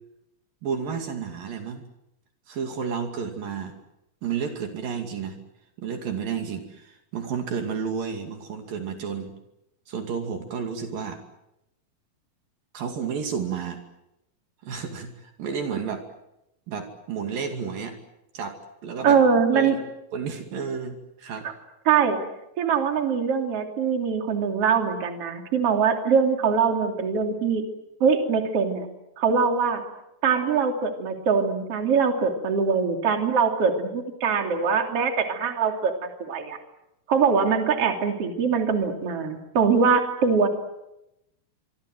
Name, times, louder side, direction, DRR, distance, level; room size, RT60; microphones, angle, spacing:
voice 1, 0.6-1.8 2.5-3.8 4.2-5.4 5.8-9.3 9.9-11.2 12.7-13.8 14.6-16.0 16.7-18.0 18.3-19.2 19.5-19.8 20.1-21.5, right 6 dB, 65° right, 5 dB, 4.2 m, -31 dB
voice 2, 19.0-19.8 21.4-21.5 21.9-22.2 22.6-27.6 28.0-28.9 29.2-29.8 30.2-36.6 37.1-40.5, right 6 dB, 40° right, 4 dB, 3.6 m, -22 dB
26.5 x 23.5 x 7.8 m, 0.88 s
omnidirectional pair, 4.3 m